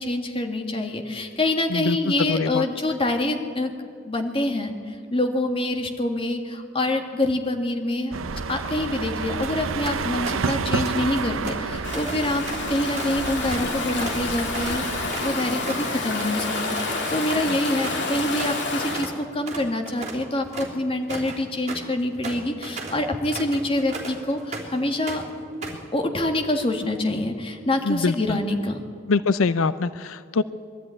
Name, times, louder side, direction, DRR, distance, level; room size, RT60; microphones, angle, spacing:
voice 1, 0.0-3.7 4.1-8.1 8.5-16.5 16.8-25.2 25.9-28.8, left 1 dB, 25° left, 4 dB, 1.8 m, -26 dB
voice 2, 2.3-2.6 27.9-28.1 29.1-30.4, left 4 dB, 85° left, 14 dB, 0.5 m, -23 dB
sound 1, 8.1-15.1, right 4 dB, 80° right, 0.7 m, -30 dB
sound 2, 9.4-9.6 9.9-10.6 10.8-18.6 18.9-19.1 19.4-24.8 25.1-25.9, right 3 dB, 35° right, 3.2 m, -36 dB
Stream / Ocean, 11.8-19.1, left 3 dB, 55° left, 3.1 m, -29 dB
22.0 x 13.0 x 9.6 m, 2.2 s
head